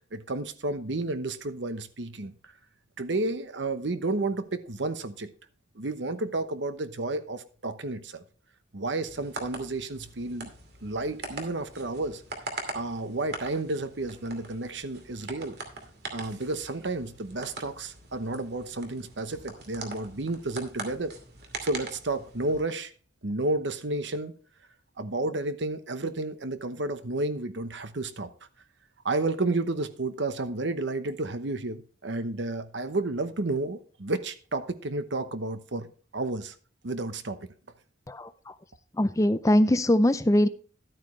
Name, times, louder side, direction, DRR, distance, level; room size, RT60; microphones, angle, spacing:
voice 1, 0.1-2.5 3.0-5.3 5.7-8.2 8.7-10.5 10.8-12.2 12.7-15.6 16.1-21.1 21.6-22.9 23.2-24.3 25.0-28.3 29.0-35.9 36.1-36.5 36.8-37.4, right 2 dB, 70° right, 1.0 m, -31 dB
sound 1, 9.0-22.6, right 3 dB, 55° right, 2.5 m, -42 dB
voice 2, 38.1-38.6 38.9-40.5, left 1 dB, 15° left, 0.5 m, -22 dB
12.0 x 9.0 x 3.2 m
head